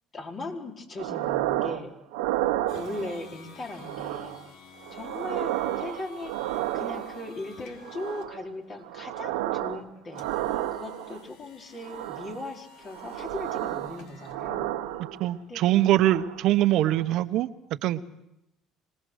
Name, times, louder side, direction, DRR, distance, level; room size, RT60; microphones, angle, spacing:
voice 1, 0.1-1.9 2.8-4.4 4.9-10.3 10.7-14.7 15.5-15.6, left 2 dB, 40° left, 1 dB, 4.6 m, -38 dB
sound 1, 1.0-1.8 2.1-3.3 3.8-4.5 4.8-7.3 7.8-8.5 8.8-9.8 10.1-11.2 11.8-12.4 12.9-15.4 15.8-16.4 16.8-17.0, right 14 dB, 90° right, 1.2 m, -32 dB
sound 2, 2.7-17.3, left 3 dB, 75° left, 3.3 m, -52 dB
voice 2, 15.2-18.0, right 14 dB, 70° right, 10 dB, 1.1 m, -23 dB
26.0 x 19.5 x 6.5 m, 0.85 s
supercardioid pair, 85°, 0 cm